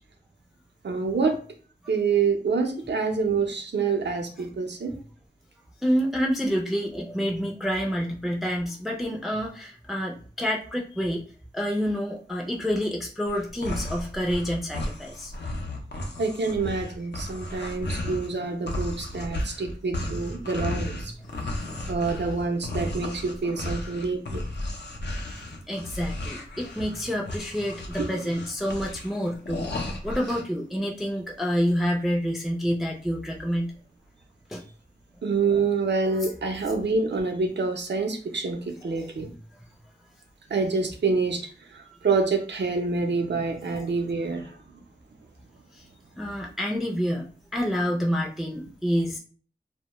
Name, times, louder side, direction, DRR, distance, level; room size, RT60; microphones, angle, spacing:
voice 1, 0.8-1.4 1.9-4.9 16.2-21.1 21.9-24.4 28.0-28.1 35.2-39.3 40.5-41.5 41.7-44.5, right 4 dB, 85° right, 3 dB, 0.5 m, -27 dB
voice 2, 5.8-11.2 11.5-15.3 21.1-21.2 25.2-33.7 34.5-34.6 39.0-39.1 43.7-43.8 45.7-45.8 46.1-49.2, equal, ahead, 0 dB, 0.4 m, -28 dB
sound 1, 13.3-18.3 18.7-30.4, left 1 dB, 75° left, 0.5 m, -34 dB
2.2 x 2.1 x 2.9 m, 0.42 s
wide cardioid pair, 65°, 18 cm